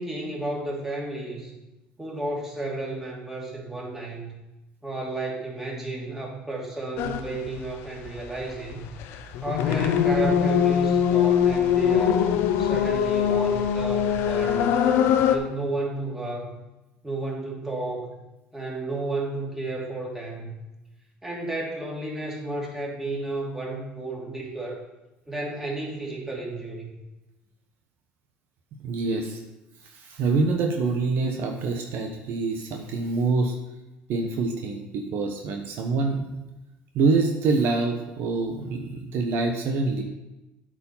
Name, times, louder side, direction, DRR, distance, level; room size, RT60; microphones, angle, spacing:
voice 1, 0.0-1.5 2.0-4.3 4.8-8.9 9.4-12.2 12.6-14.8 15.3-16.5 17.0-18.2 18.5-20.5 21.2-24.8 25.3-26.9, right 2 dB, 10° right, -3 dB, 2.7 m, -32 dB
sound 1, 7.0-7.2 7.5-15.4, left 8 dB, 70° left, 0.7 m, -22 dB
voice 2, 28.8-29.4 29.8-33.5 34.1-36.4 36.9-40.0, right 3 dB, 65° right, 3 dB, 1.0 m, -26 dB
8.3 x 5.0 x 5.5 m, 0.99 s
supercardioid pair, 85°, 4 cm